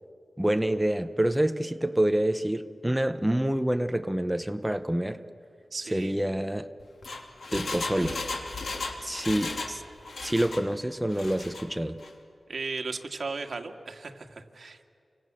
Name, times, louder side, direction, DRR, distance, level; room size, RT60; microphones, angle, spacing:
voice 1, 0.4-5.2 5.9-6.7 7.5-8.2 9.0-9.8 10.2-12.0, right 1 dB, 10° right, 9 dB, 0.8 m, -27 dB
voice 2, 5.7-6.1 12.5-14.9, right 4 dB, 65° right, 4 dB, 2.1 m, -36 dB
Engine, 6.8-9.8 10.0-10.6 11.1-11.6 12.0-12.1, left 3 dB, 80° left, 3.1 m, -35 dB
29.5 x 26.0 x 7.6 m, 2.4 s
wide cardioid pair, 85°, 0 cm